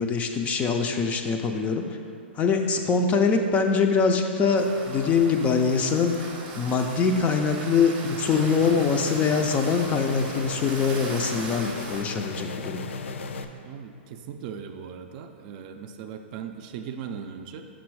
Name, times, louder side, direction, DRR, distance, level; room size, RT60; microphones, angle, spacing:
voice 1, 0.0-1.9 2.4-12.8, left 5 dB, 20° left, 4 dB, 0.4 m, -23 dB
sound 1, 4.6-12.0, right 3 dB, 25° right, 0.8 m, -39 dB
sound 2, 8.3-13.4, left 4 dB, 80° left, 0.4 m, -36 dB
voice 2, 13.6-17.6, right 7 dB, 45° right, 6 dB, 0.4 m, -38 dB
6.1 x 4.1 x 4.7 m, 2.4 s
hypercardioid pair, 135°, 6 cm